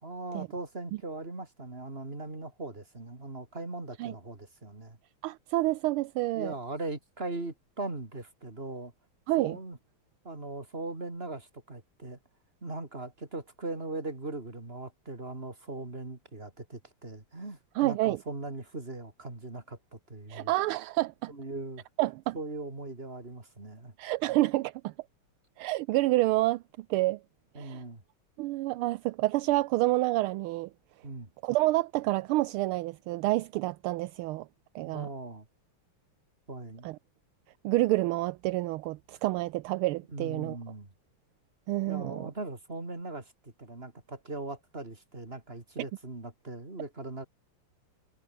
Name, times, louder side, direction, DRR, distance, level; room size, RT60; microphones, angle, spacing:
voice 1, 0.0-5.0 6.3-8.9 9.4-9.8 10.2-12.2 12.6-20.5 21.3-21.9 22.3-24.0 27.5-28.0 31.0-31.3 34.8-35.5 36.5-36.9 40.1-40.9 41.9-47.3, right 2 dB, 25° right, 4.2 m, -39 dB
voice 2, 5.2-6.5 9.3-9.6 17.8-18.2 20.3-21.3 22.0-22.3 24.0-24.9 25.6-26.6 26.9-27.2 27.6-27.8 28.4-30.7 31.4-34.5 34.7-35.1 36.8-37.0 37.6-40.6 41.7-42.3, right 18 dB, 80° right, 1.4 m, -28 dB
omnidirectional pair, 2.4 m